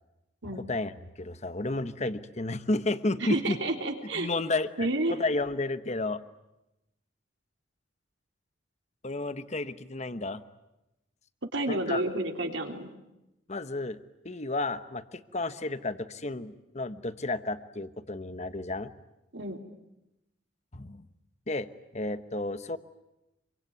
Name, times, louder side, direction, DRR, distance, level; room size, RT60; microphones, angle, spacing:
voice 1, 0.4-0.9 1.2-3.6 4.1-6.2 9.0-10.4 11.7-12.0 13.5-14.0 14.2-18.9 20.7-21.1 21.5-22.8, left 2 dB, 35° left, 12 dB, 1.2 m, -32 dB
voice 2, 3.2-4.3 4.8-5.1 11.5-12.9 19.3-19.6, right 2 dB, 75° right, 4 dB, 3.5 m, -30 dB
26.5 x 24.0 x 9.5 m, 0.91 s
head